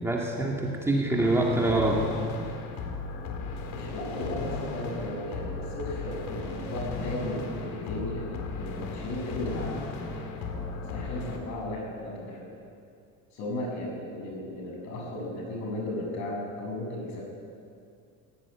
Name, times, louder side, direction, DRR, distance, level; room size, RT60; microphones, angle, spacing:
voice 1, 0.0-2.1, right 2 dB, 5° right, -2 dB, 2.2 m, -25 dB
sound 1, 1.2-11.4, left 4 dB, 70° left, 3.8 m, -36 dB
voice 2, 3.7-12.5 13.3-17.2, left 1 dB, 50° left, 0 dB, 7.9 m, -35 dB
24.5 x 17.0 x 9.8 m, 2.4 s
cardioid pair, 170°, 35 cm